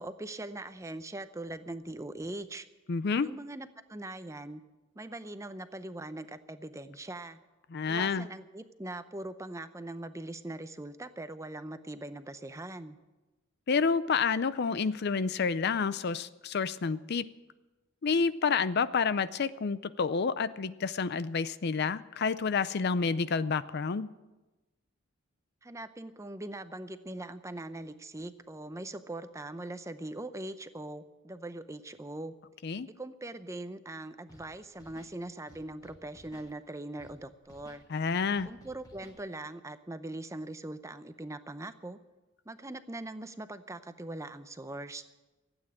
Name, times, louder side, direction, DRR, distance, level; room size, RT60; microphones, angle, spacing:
voice 1, 0.0-2.7 3.2-4.6 5.0-7.4 7.9-13.0 25.6-32.3 33.0-37.8 38.5-42.0 42.5-45.0, right 2 dB, 15° right, 11 dB, 0.6 m, -41 dB
voice 2, 2.9-3.3 7.7-8.3 13.7-17.3 18.0-24.1 32.6-32.9 37.9-38.5, left 5 dB, 50° left, 15 dB, 0.5 m, -29 dB
Scratching (performance technique), 34.3-34.5 34.7-35.1 35.5-36.5 37.0-37.1 37.4-37.8 38.3-39.2, left 1 dB, 20° left, 2.0 m, -56 dB
15.5 x 8.9 x 8.6 m, 1.1 s
head